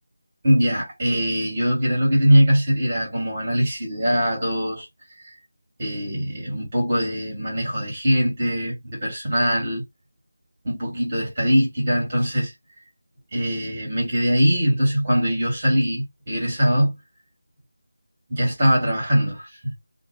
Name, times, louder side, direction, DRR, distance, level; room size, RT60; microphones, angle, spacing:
voice 1, 0.4-4.9 5.2-5.3 5.8-9.8 10.6-12.5 13.3-16.9 18.3-19.7, equal, 35° right, 1.6 m, -22 dB
2.6 x 2.6 x 2.5 m
figure-of-eight pair, 165°, 0 cm